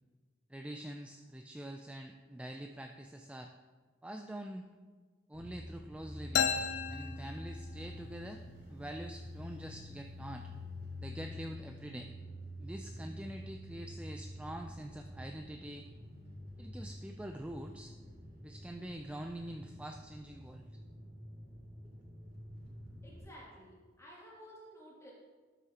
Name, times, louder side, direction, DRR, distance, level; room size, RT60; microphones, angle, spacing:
voice 1, 0.5-3.5 4.0-4.6 5.3-6.5 6.9-8.4 8.7-10.5 11.0-12.1 12.6-15.9 16.6-17.9 18.4-20.7, right 1 dB, 5° right, 4 dB, 0.4 m, -45 dB
sound 1, 5.3-23.2, left 1 dB, 65° right, 2.5 m, -48 dB
sound 2, 6.3-8.0, left 7 dB, 70° left, 0.5 m, -34 dB
voice 2, 23.0-25.1, equal, 15° left, -5 dB, 2.6 m, -53 dB
12.5 x 8.1 x 2.9 m, 1.4 s
head